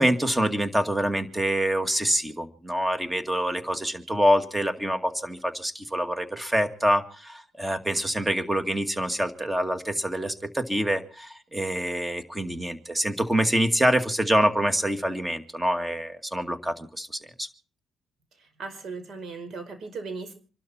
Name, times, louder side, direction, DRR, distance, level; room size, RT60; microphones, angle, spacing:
voice 1, 0.0-17.5, equal, 10° right, 8 dB, 2.1 m, -26 dB
voice 2, 18.4-20.3, right 4 dB, 60° right, 8 dB, 5.0 m, -37 dB
27.0 x 12.0 x 4.4 m, 0.39 s
cardioid pair, 90°, 0 cm